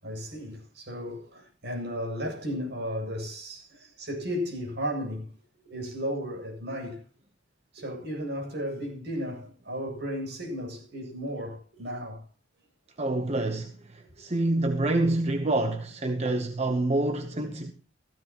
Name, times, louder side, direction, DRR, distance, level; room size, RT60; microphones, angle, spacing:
voice 1, 0.0-5.3 5.6-7.0 7.7-12.2, equal, 60° right, 7.7 m, -34 dB
voice 2, 13.0-17.7, right 2 dB, 35° right, 1.0 m, -27 dB
16.0 x 15.5 x 3.0 m
head